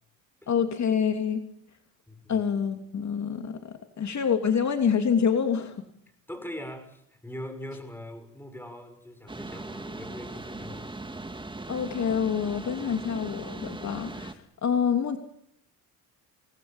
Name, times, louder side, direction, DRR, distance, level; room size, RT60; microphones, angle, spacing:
voice 1, 0.5-1.4 2.3-5.8 11.7-15.2, left 7 dB, 45° left, 5 dB, 3.0 m, -26 dB
voice 2, 2.1-2.5 6.3-10.9, left 1 dB, 5° left, 10 dB, 6.6 m, -41 dB
sound 1, 9.3-14.3, right 2 dB, 10° right, 2.4 m, -39 dB
28.5 x 20.5 x 9.0 m, 0.73 s
supercardioid pair, 85°, 39 cm